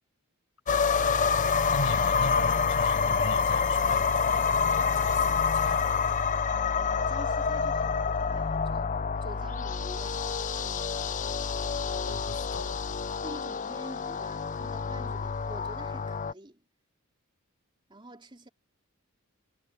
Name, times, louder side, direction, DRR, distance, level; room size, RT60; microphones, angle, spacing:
sound 1, 0.7-16.3, left 5 dB, 35° left, 0.5 m, -27 dB
voice 1, 1.7-6.0 12.0-12.9, left 2 dB, 65° left, 5.4 m, -38 dB
voice 2, 6.5-10.2 10.6-11.1 13.2-16.6 17.9-18.5, right 1 dB, 20° right, 3.5 m, -47 dB
head